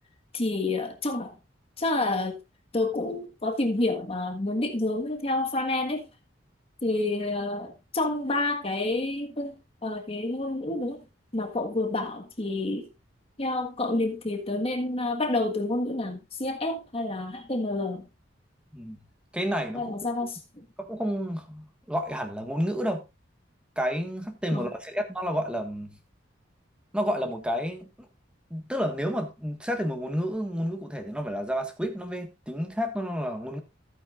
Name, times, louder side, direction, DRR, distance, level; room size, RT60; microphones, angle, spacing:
voice 1, 0.3-1.4 1.8-2.4 2.7-6.1 6.8-9.5 9.8-11.1 11.3-12.9 13.4-18.1 19.7-20.7 24.5-24.7, left 2 dB, 30° left, 1.6 m, -29 dB
voice 2, 19.3-20.0 20.8-23.0 23.7-26.0 26.9-27.9 28.5-33.6, equal, 5° right, 1.6 m, -30 dB
14.5 x 8.7 x 2.5 m
head